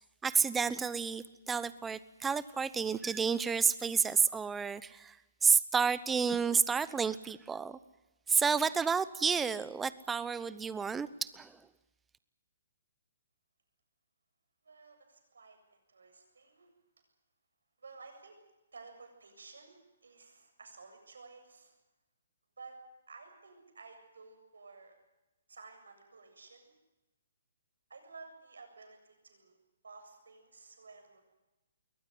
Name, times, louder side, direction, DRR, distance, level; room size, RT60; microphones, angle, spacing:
voice 1, 0.2-7.8 8.3-11.7, right 6 dB, 10° right, 16 dB, 0.9 m, -30 dB
voice 2, 14.6-16.7 17.8-18.4 18.7-21.8 22.6-22.8 23.1-25.0 25.5-26.8 27.9-29.6 29.8-31.2, right 4 dB, 85° right, 5 dB, 7.7 m, -53 dB
22.5 x 19.0 x 9.5 m, 1.0 s
hypercardioid pair, 150°, 0 cm